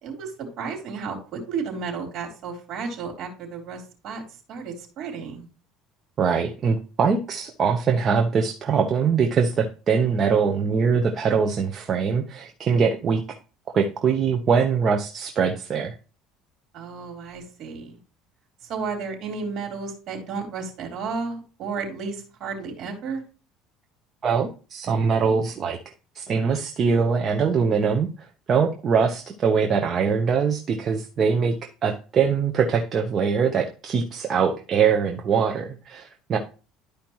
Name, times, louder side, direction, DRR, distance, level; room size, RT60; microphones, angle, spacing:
voice 1, 0.0-4.2 4.5-5.5 16.7-18.0 18.7-23.2, right 5 dB, 55° right, 2 dB, 3.8 m, -33 dB
voice 2, 6.2-13.2 13.7-15.9 24.2-25.8 26.1-28.1 28.5-31.5 31.8-36.4, right 6 dB, 40° right, 3 dB, 1.0 m, -22 dB
12.0 x 5.0 x 3.1 m, 0.35 s
supercardioid pair, 115°, 0 cm